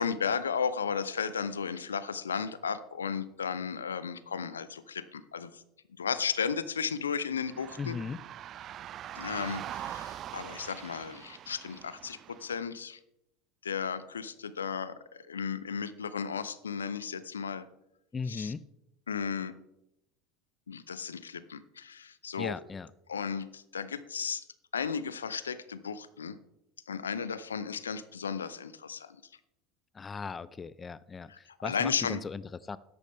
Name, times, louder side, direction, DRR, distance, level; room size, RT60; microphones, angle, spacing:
voice 1, 0.0-5.6 6.0-8.0 9.1-13.0 13.6-17.7 18.3-18.5 19.1-19.5 20.7-22.5 23.1-24.4 24.7-26.4 26.9-29.2 31.3-32.2, left 6 dB, 80° left, 16 dB, 0.5 m, -34 dB
sound 1, 7.4-12.6, right 11 dB, 40° right, 0.3 m, -43 dB
voice 2, 7.8-8.2 18.1-18.6 22.4-22.9 29.9-32.8, left 5 dB, 25° left, 19 dB, 0.4 m, -37 dB
13.5 x 10.5 x 3.5 m, 0.84 s
figure-of-eight pair, 70°, 0 cm